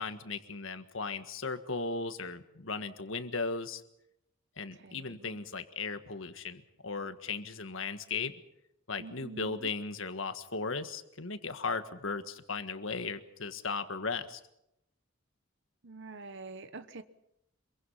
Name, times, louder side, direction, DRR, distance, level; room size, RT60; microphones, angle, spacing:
voice 1, 0.0-3.8 4.6-8.4 8.9-14.4, left 4 dB, 70° left, 9 dB, 1.6 m, -37 dB
voice 2, 4.8-5.4 9.0-9.7 15.8-17.0, right 3 dB, 60° right, 11 dB, 1.1 m, -46 dB
26.5 x 23.0 x 5.7 m, 0.82 s
head